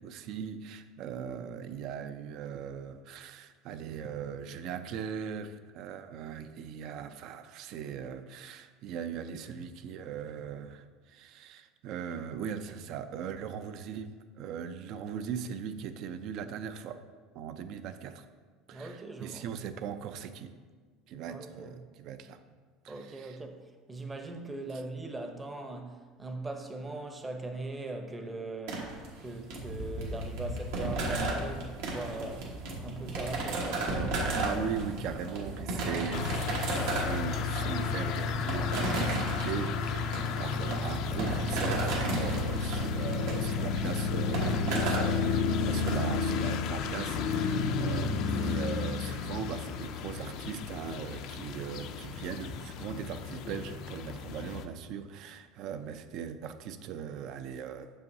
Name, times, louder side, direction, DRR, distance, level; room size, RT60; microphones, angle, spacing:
voice 1, 0.0-17.0 17.3-18.2 18.7-20.5 21.1-22.4 22.8-23.4 24.7-24.8 34.4-57.9, right 7 dB, 60° right, 10 dB, 0.4 m, -39 dB
voice 2, 18.7-19.5 21.3-21.8 22.9-23.6 23.9-28.9 29.2-32.5 32.8-33.9, right 2 dB, 15° right, 5 dB, 0.7 m, -40 dB
sound 1, 28.7-46.0, right 2 dB, 80° right, 1.3 m, -34 dB
sound 2, 35.4-42.5, left 1 dB, 40° right, 0.9 m, -43 dB
sound 3, 36.1-54.6, left 5 dB, 60° left, 0.4 m, -32 dB
6.9 x 5.6 x 2.7 m, 1.5 s
supercardioid pair, 115°, 0 cm